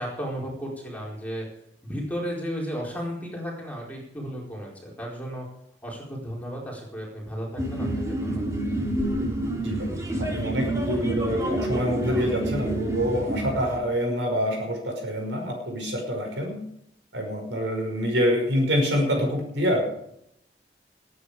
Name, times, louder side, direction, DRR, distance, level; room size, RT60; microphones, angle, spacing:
voice 1, 0.0-1.4 1.8-5.5 5.8-7.9 8.2-8.4, equal, 10° left, -3 dB, 4.7 m, -34 dB
sound 1, 7.6-13.8, right 1 dB, 15° right, 2.9 m, -28 dB
voice 2, 9.6-16.6 17.1-19.8, equal, 85° right, 1 dB, 5.5 m, -26 dB
20.5 x 9.5 x 5.1 m, 0.73 s
head